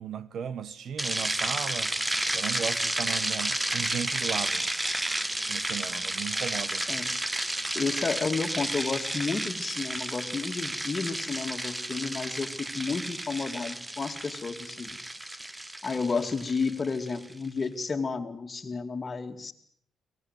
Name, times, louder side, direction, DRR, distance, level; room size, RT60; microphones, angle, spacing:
voice 1, 0.0-1.9 2.3-4.7 5.5-6.8, right 8 dB, 60° right, 1.2 m, -36 dB
sound 1, 1.0-17.3, right 1 dB, 10° right, 0.9 m, -32 dB
voice 2, 7.7-14.9 15.8-19.5, left 4 dB, 35° left, 2.3 m, -31 dB
24.0 x 19.0 x 8.1 m
cardioid pair, 90°, 0 cm